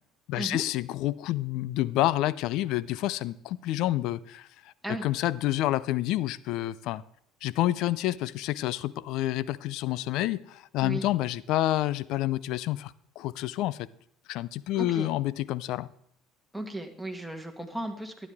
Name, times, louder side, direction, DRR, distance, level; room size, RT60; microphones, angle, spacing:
voice 1, 0.3-4.5 4.9-7.0 7.4-13.8 14.3-15.9, left 15 dB, 70° left, 0.5 m, -28 dB
voice 2, 14.8-15.1 16.5-18.3, right 1 dB, ahead, 2.1 m, -35 dB
12.5 x 10.5 x 3.5 m
supercardioid pair, 85°, 0 cm